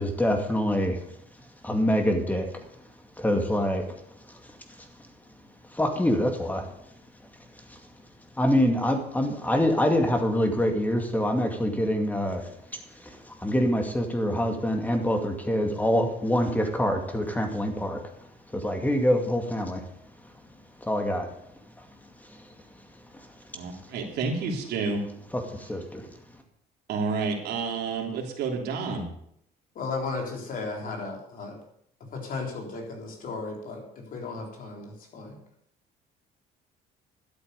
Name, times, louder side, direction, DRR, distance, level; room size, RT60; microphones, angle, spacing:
voice 1, 0.0-2.7 3.2-3.9 4.3-4.4 4.8-4.9 5.7-6.7 7.7-7.8 8.4-19.9 20.8-21.3 21.8-21.9 22.2-22.5 23.1-23.3 25.3-26.1, equal, 10° left, 4 dB, 2.2 m, -26 dB
voice 2, 23.5-25.0 26.9-29.1, right 4 dB, 75° right, 0 dB, 3.2 m, -30 dB
voice 3, 29.8-31.6 32.1-35.4, left 3 dB, 55° left, 1 dB, 3.8 m, -35 dB
12.0 x 8.3 x 6.9 m, 0.71 s
cardioid pair, 110°, 17 cm